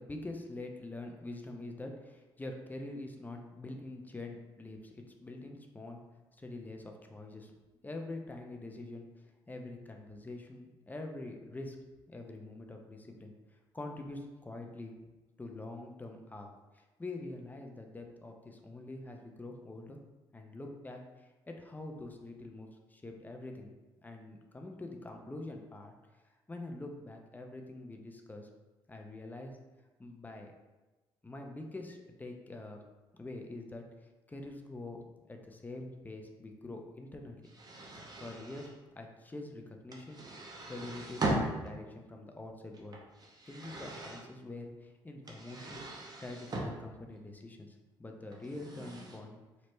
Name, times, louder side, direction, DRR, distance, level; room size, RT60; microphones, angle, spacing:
voice 1, 0.0-6.0 6.4-7.5 7.8-9.1 9.5-11.8 12.1-14.9 15.4-16.5 16.7-20.0 20.3-23.7 24.0-25.9 26.2-28.5 28.9-29.6 30.0-30.5 31.2-32.8 33.1-33.8 34.3-35.0 35.3-37.4 38.2-40.2 40.7-43.0 43.5-45.9 46.2-49.4, left 2 dB, 15° left, 2 dB, 0.5 m, -45 dB
sound 1, 37.4-38.7 39.9-41.7 42.7-44.2 45.2-46.7 48.3-49.2, right 2 dB, 35° right, 0.7 m, -39 dB
3.2 x 2.0 x 3.0 m, 1.2 s
hypercardioid pair, 50°, 12 cm